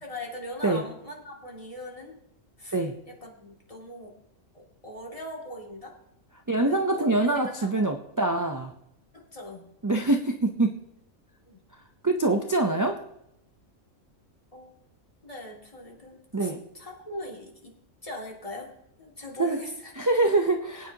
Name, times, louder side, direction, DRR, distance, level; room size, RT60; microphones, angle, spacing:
voice 1, 0.0-2.1 2.6-2.8 3.1-4.1 4.5-6.0 6.7-7.7 9.1-9.7 11.5-11.6 14.5-14.8 15.2-17.7 18.0-18.7 19.0-19.9, left 1 dB, 25° left, -2 dB, 2.5 m, -41 dB
voice 2, 6.5-8.7 9.8-10.8 12.0-13.0 16.3-16.6 19.4-19.6 20.0-20.9, right 2 dB, 25° right, 3 dB, 0.4 m, -24 dB
21.5 x 9.3 x 2.8 m, 0.81 s
omnidirectional pair, 1.4 m